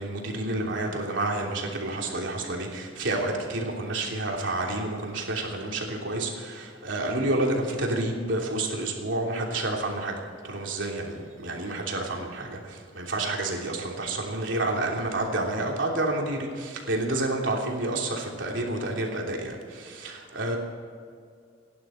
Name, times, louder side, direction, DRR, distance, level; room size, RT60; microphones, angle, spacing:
voice 1, 0.0-20.6, right 2 dB, 75° right, 0 dB, 3.1 m, -29 dB
29.0 x 11.0 x 4.5 m, 2.2 s
head